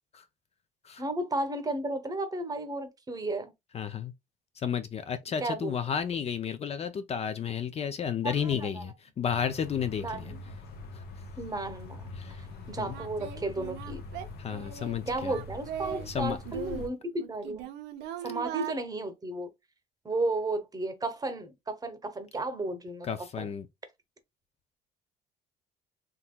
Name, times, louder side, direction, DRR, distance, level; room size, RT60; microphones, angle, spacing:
voice 1, 1.0-3.5 5.4-5.7 8.2-8.8 10.0-10.6 11.4-12.1 12.7-14.0 15.1-17.7 18.2-19.5 20.0-23.1 23.4-23.5, right 2 dB, 20° right, 0.9 m, -33 dB
voice 2, 3.7-4.1 4.6-10.3 10.9-11.0 12.2-12.4 12.8-12.9 14.4-15.4 16.1-16.4 23.0-23.7, left 7 dB, 40° left, 0.4 m, -32 dB
sound 1, 9.3-16.9, left 3 dB, 70° left, 0.9 m, -43 dB
Singing, 12.3-12.4 12.9-16.1 16.4-18.8, right 11 dB, 85° right, 0.6 m, -40 dB
3.6 x 2.9 x 2.2 m
cardioid pair, 110°, 17 cm